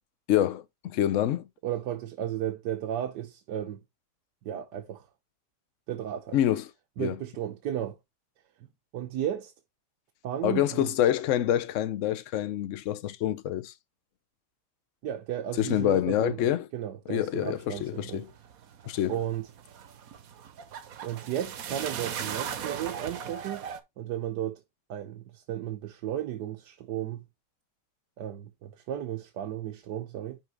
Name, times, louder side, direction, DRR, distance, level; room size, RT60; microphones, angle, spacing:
voice 1, 0.3-1.5 6.3-6.6 7.0-7.2 10.4-13.7 15.6-16.7 17.1-18.3 18.9-19.2, left 12 dB, 60° left, 0.9 m, -26 dB
voice 2, 1.6-3.8 4.4-5.1 5.9-6.4 7.0-8.0 8.9-9.5 10.2-10.9 15.0-18.2 19.1-19.5 21.0-23.6 24.0-24.6 24.9-27.3 28.2-30.4, right 11 dB, 80° right, 1.4 m, -34 dB
sound 1, 17.2-23.8, right 8 dB, 65° right, 1.2 m, -39 dB
10.5 x 3.6 x 3.3 m
omnidirectional pair, 1.8 m